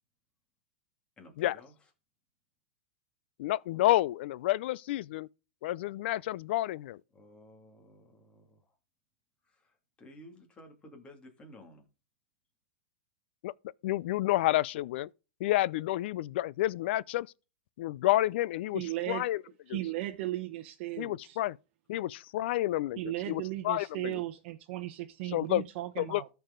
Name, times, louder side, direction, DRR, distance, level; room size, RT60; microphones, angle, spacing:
voice 1, 1.2-1.9 7.1-8.7 9.4-11.9, left 1 dB, 15° left, 2.4 m, -54 dB
voice 2, 3.4-5.3 5.6-7.0 13.4-13.5 13.8-15.1 15.4-17.3 17.8-19.4 19.7-19.8 21.0-21.6 21.9-23.0 23.3-24.1 25.3-25.6 26.0-26.2, left 15 dB, 65° left, 0.4 m, -29 dB
voice 3, 18.7-19.3 19.7-21.4 23.0-26.3, right 15 dB, 55° right, 0.9 m, -36 dB
13.5 x 4.7 x 3.8 m
hypercardioid pair, 135°, 6 cm